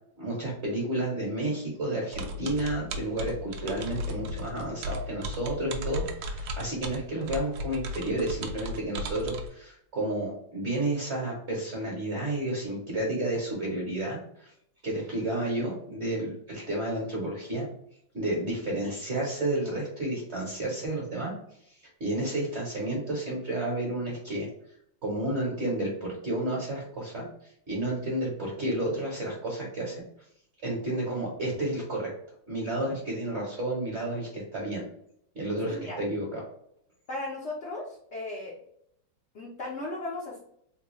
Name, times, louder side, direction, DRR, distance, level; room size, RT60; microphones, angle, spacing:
voice 1, 0.2-14.5 14.8-17.7 18.1-21.3 21.7-21.8 22.0-24.5 25.0-29.9 30.6-32.1 32.5-34.8 35.3-36.4, right 1 dB, 45° right, -4 dB, 1.1 m, -31 dB
sound 1, 2.1-9.5, equal, 75° right, 0.8 m, -36 dB
voice 2, 35.7-36.0 37.1-38.6 39.3-40.4, left 2 dB, 60° left, -4 dB, 0.7 m, -36 dB
3.8 x 2.3 x 3.0 m, 0.71 s
omnidirectional pair, 1.9 m